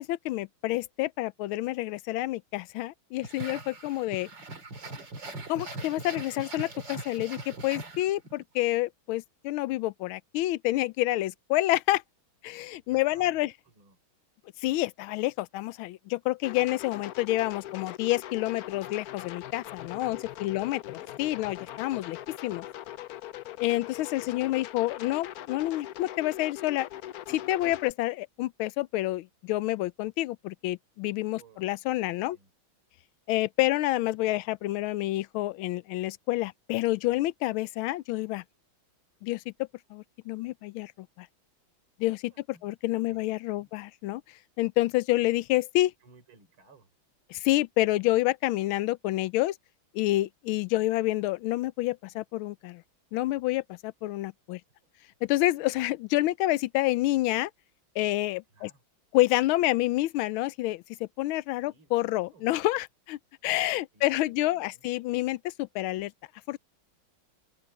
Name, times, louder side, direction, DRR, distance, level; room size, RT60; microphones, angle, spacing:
voice 1, 0.0-4.3 5.5-12.0 12.4-13.5 14.6-22.7 23.6-26.9 27.3-32.4 33.3-38.4 39.2-40.9 41.2-41.3 42.0-42.3 42.6-44.2 44.6-45.9 47.3-49.6 49.9-52.8 53.1-54.6 55.2-57.5 58.0-58.7 59.1-66.1 66.5-66.6, left 17 dB, 90° left, 1.4 m, -28 dB
sound 1, 3.2-8.4, right 2 dB, 60° right, 3.9 m, -41 dB
voice 2, 12.8-14.0 20.0-21.2 31.3-32.5 42.3-43.7 46.0-46.9 54.8-54.9 55.3-55.4 58.5-58.8 61.6-62.5 63.9-64.8, right 4 dB, 85° right, 4.8 m, -60 dB
sound 2, 16.4-27.9, left 13 dB, 70° left, 0.9 m, -41 dB
open air
omnidirectional pair, 2.2 m